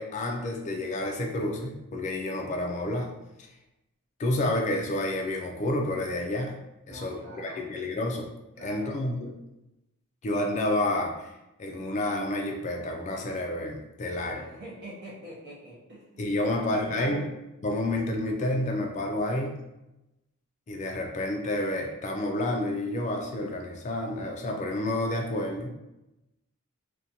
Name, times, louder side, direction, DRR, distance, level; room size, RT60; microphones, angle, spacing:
voice 1, 0.0-3.1 4.2-6.6 6.9-8.3 8.6-9.3 10.2-11.3 11.6-14.3 16.2-17.2 17.6-19.6 20.7-25.7, left 1 dB, 35° left, 1 dB, 0.3 m, -29 dB
voice 2, 6.9-7.7 8.6-8.9 14.0-17.3, equal, 55° right, -4 dB, 0.6 m, -43 dB
2.5 x 2.2 x 2.7 m, 0.93 s
head